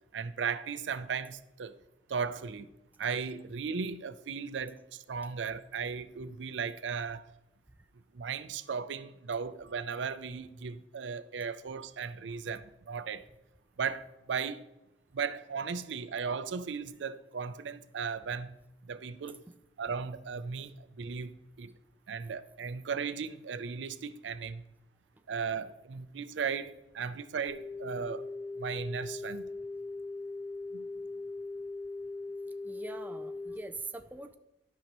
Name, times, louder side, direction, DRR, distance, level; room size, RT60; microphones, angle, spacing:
voice 1, 0.1-1.8 2.1-2.7 3.0-7.3 8.1-13.3 13.8-14.6 15.1-18.6 18.8-19.4 19.8-21.8 22.1-24.6 25.3-28.3 28.6-29.5 30.7-30.9, right 6 dB, 75° right, 0.5 m, -36 dB
sound 1, 27.5-33.6, left 3 dB, 25° left, 3.0 m, -40 dB
voice 2, 32.6-34.3, right 3 dB, 10° right, 0.4 m, -43 dB
13.0 x 5.4 x 3.0 m
head